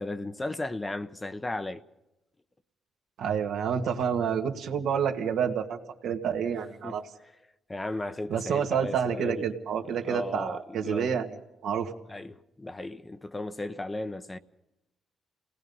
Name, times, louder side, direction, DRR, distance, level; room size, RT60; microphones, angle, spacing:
voice 1, 0.0-1.8 6.8-7.0 7.7-9.5 9.9-11.1 12.1-14.4, left 2 dB, 20° left, 0.8 m, -35 dB
voice 2, 3.2-7.0 8.3-11.3 11.6-11.9, right 7 dB, 75° right, 1.8 m, -28 dB
27.5 x 18.5 x 5.5 m
cardioid pair, 90°, 0 cm